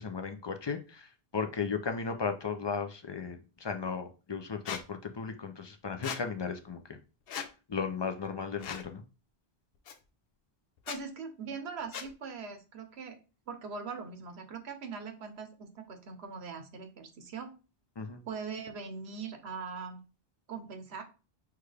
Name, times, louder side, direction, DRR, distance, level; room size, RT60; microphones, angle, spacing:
voice 1, 0.0-7.0 7.7-9.0 18.0-18.3, left 5 dB, 45° left, 6 dB, 0.3 m, -36 dB
Squeak, 4.7-4.8 6.0-6.2 7.3-7.5 8.6-8.9 9.9-10.0 10.8-11.0 11.9-12.1, left 8 dB, 70° left, 0.8 m, -38 dB
voice 2, 10.9-13.2 13.5-17.5 18.2-20.0 20.5-21.0, right 5 dB, 90° right, 7 dB, 1.1 m, -41 dB
6.0 x 2.3 x 3.3 m, 0.32 s
omnidirectional pair, 1.1 m